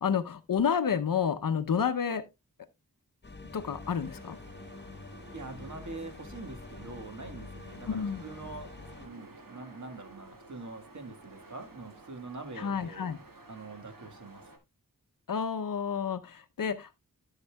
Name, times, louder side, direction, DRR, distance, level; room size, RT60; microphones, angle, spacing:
voice 1, 0.0-2.3 3.5-4.4 7.9-8.2 12.6-13.2 15.3-17.0, left 7 dB, 70° left, 0.7 m, -30 dB
sound 1, 3.2-9.1, left 3 dB, 30° left, 0.9 m, -46 dB
sound 2, 3.5-14.6, right 2 dB, 70° right, 2.0 m, -53 dB
voice 2, 5.3-13.0 13.5-14.5, right 3 dB, 55° right, 1.6 m, -44 dB
13.5 x 6.6 x 2.2 m
wide cardioid pair, 80°, 34 cm